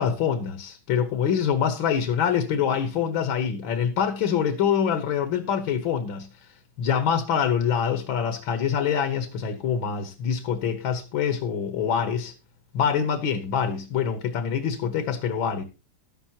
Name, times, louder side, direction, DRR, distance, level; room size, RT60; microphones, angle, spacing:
voice 1, 0.0-6.3 6.8-12.3 12.7-15.6, left 7 dB, 75° left, 1.9 m, -25 dB
12.5 x 11.5 x 2.9 m
omnidirectional pair, 2.2 m